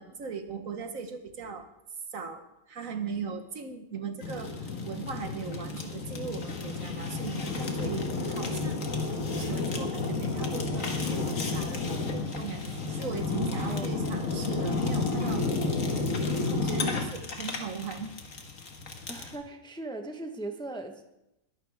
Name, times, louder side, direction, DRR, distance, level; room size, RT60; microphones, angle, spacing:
voice 1, 0.0-1.7 2.1-8.9 9.2-15.5 16.5-18.1, right 5 dB, 65° right, 7 dB, 1.6 m, -39 dB
Fire, 4.2-19.4, left 3 dB, 60° left, 1.9 m, -31 dB
sound 1, 11.5-16.6, equal, 50° right, 6.2 m, -52 dB
voice 2, 19.1-21.0, right 2 dB, 5° left, 5 dB, 0.9 m, -38 dB
21.5 x 12.0 x 3.5 m, 0.87 s
omnidirectional pair, 1.5 m